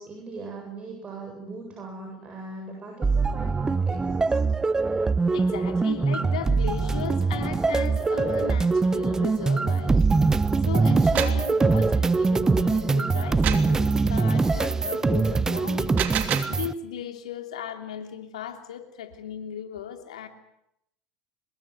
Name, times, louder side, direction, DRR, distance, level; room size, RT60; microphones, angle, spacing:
voice 1, 0.0-4.4, right 3 dB, 30° right, 1 dB, 8.0 m, -39 dB
sound 1, 3.0-16.7, right 4 dB, 15° right, 1.0 m, -23 dB
voice 2, 5.3-10.1 10.6-15.9 16.5-20.3, left 9 dB, 90° left, 6 dB, 3.0 m, -36 dB
sound 2, 10.9-11.5 13.4-13.8 15.7-16.6, right 10 dB, 50° right, 3.0 m, -29 dB
25.0 x 21.5 x 7.9 m, 0.78 s
hypercardioid pair, 95°, 3 cm